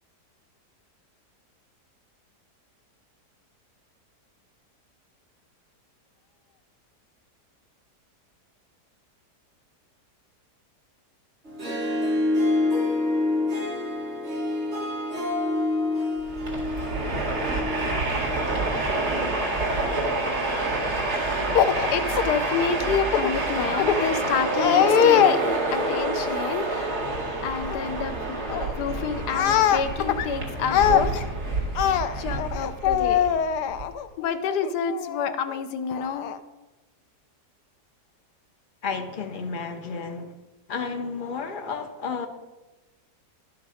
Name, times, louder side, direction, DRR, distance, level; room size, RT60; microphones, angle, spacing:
Harp, 11.4-18.9, left 2 dB, 40° right, 2.1 m, -27 dB
Train, 16.2-33.8, right 2 dB, 70° right, 2.5 m, -28 dB
voice 1, 21.5-25.4 25.7-27.0 27.4-31.3 31.7-36.4, left 8 dB, 80° left, 10 dB, 1.3 m, -24 dB
voice 2, 38.8-40.4 40.7-42.3, left 5 dB, 50° left, 6 dB, 0.6 m, -32 dB
11.5 x 6.0 x 4.9 m, 1.1 s
omnidirectional pair, 1.8 m